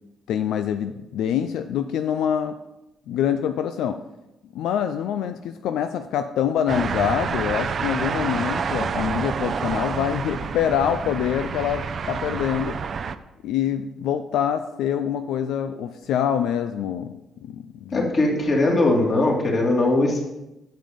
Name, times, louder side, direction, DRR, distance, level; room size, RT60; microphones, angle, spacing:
voice 1, 0.3-2.6 3.1-4.0 4.5-12.8 13.4-18.1, left 9 dB, 85° left, 9 dB, 0.5 m, -25 dB
sound 1, 6.7-13.2, right 6 dB, 45° right, 0.5 m, -28 dB
voice 2, 17.9-20.3, left 2 dB, 40° left, -1 dB, 2.5 m, -20 dB
8.8 x 7.5 x 5.2 m, 0.93 s
cardioid pair, 130°, 0 cm